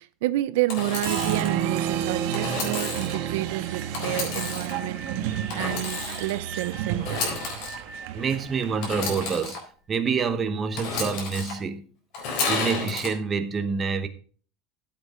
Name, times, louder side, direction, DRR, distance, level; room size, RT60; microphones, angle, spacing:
voice 1, 0.0-7.3, right 16 dB, 75° right, 0.5 m, -29 dB
Engine / Sawing, 0.7-1.5 2.3-3.2 3.9-4.8 5.5-6.4 7.0-7.7 8.8-9.6 10.7-11.5 12.1-13.1, left 4 dB, 50° left, 4.0 m, -31 dB
Applause, 1.0-9.4, right 9 dB, 60° right, 1.5 m, -31 dB
sound 1, 4.3-9.6, right 3 dB, 10° left, 2.6 m, -44 dB
voice 2, 8.1-9.6 9.9-11.8 12.5-14.1, right 5 dB, 20° right, 1.0 m, -27 dB
13.5 x 8.1 x 3.7 m
cardioid pair, 170°, 0 cm